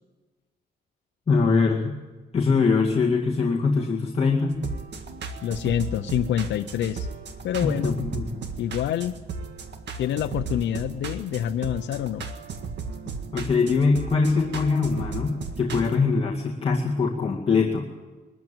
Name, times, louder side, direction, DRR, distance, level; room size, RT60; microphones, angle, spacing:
voice 1, 1.3-1.9 2.3-4.6 7.6-8.4 13.3-17.9, left 4 dB, 30° left, -2 dB, 2.1 m, -22 dB
sound 1, 4.5-16.0, right 4 dB, 70° right, 2.0 m, -36 dB
voice 2, 5.4-7.1 7.4-7.9 8.6-9.2 10.0-12.3, left 10 dB, 90° left, 5 dB, 0.7 m, -27 dB
23.0 x 14.0 x 9.0 m, 1.3 s
cardioid pair, 145°, 19 cm